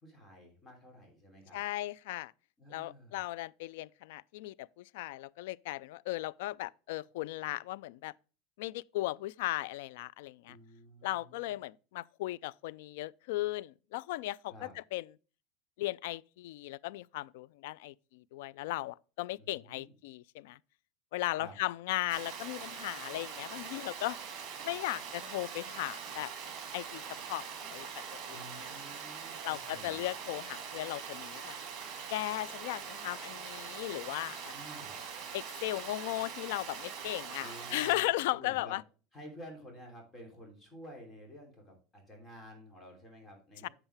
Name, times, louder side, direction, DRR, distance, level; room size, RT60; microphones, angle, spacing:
voice 1, 0.0-1.6 2.6-3.2 10.4-11.6 14.5-14.7 19.4-19.9 21.4-21.5 28.3-30.1 34.5-35.0 37.4-38.8 39.1-43.7, equal, 15° left, 3.1 m, -51 dB
voice 2, 1.5-2.3 2.7-8.1 8.6-10.6 11.0-15.1 15.8-20.6 21.1-24.2 24.6-26.3 26.7-27.0 27.3-27.9 28.1-28.5 29.4-31.5 32.1-34.5 35.3-38.8 43.6-43.7, left 17 dB, 75° left, 0.3 m, -37 dB
Water, 22.1-37.9, right 7 dB, 45° right, 2.9 m, -43 dB
7.9 x 7.3 x 3.3 m
supercardioid pair, 145°, 0 cm